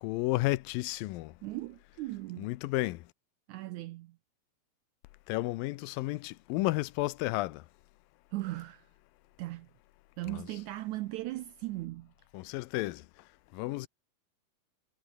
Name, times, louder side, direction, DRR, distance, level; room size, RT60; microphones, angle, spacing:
voice 1, 0.0-1.3 2.4-3.0 5.3-7.6 10.3-10.5 12.3-13.0 13.5-13.9, left 19 dB, 85° left, 2.4 m, -32 dB
voice 2, 1.4-2.5 3.5-4.2 8.3-8.9 9.4-9.7 10.2-12.1, right 17 dB, 85° right, 1.7 m, -38 dB
omnidirectional pair, 4.0 m